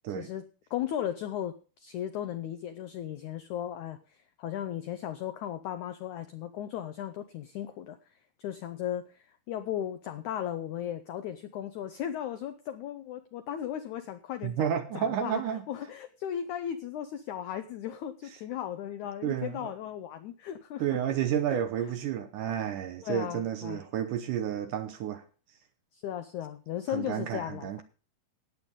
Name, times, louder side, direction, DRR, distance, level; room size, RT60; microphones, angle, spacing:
voice 1, 0.7-8.1 8.4-15.4 15.7-21.0 21.5-21.6 23.0-23.8 25.9-27.8, left 10 dB, 90° left, 1.7 m, -36 dB
voice 2, 14.4-15.6 19.2-19.7 20.8-25.2 26.9-27.8, right 9 dB, 70° right, 2.1 m, -31 dB
18.0 x 8.1 x 3.7 m
omnidirectional pair, 4.4 m